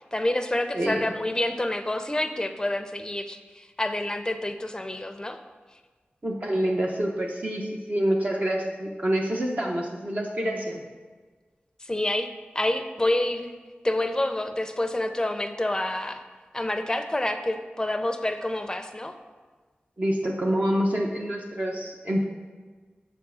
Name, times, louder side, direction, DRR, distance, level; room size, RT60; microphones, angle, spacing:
voice 1, 0.1-5.4 11.8-13.5 13.8-16.2 16.5-19.1, left 1 dB, 20° left, 7 dB, 0.5 m, -28 dB
voice 2, 6.2-10.8 20.0-22.2, equal, 40° right, -1 dB, 0.8 m, -27 dB
6.9 x 3.5 x 6.2 m, 1.4 s
wide cardioid pair, 85°, 4 cm